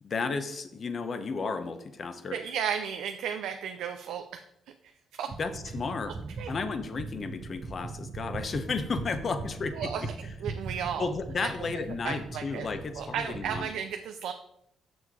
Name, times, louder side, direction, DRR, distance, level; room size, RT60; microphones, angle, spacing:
voice 1, 0.0-2.4 5.4-6.1 6.5-10.1 11.0-13.7, left 4 dB, 45° left, 10 dB, 0.9 m, -33 dB
voice 2, 2.3-4.4 4.8-4.9 5.2-5.3 6.4-6.5 9.8-10.0 10.4-11.1 11.4-11.5 12.0-12.7 13.0-14.3, right 8 dB, 85° right, 6 dB, 0.5 m, -34 dB
sound 1, 5.3-13.7, right 4 dB, 45° right, 0.9 m, -40 dB
6.9 x 6.3 x 4.8 m, 0.74 s
cardioid pair, 90°, 0 cm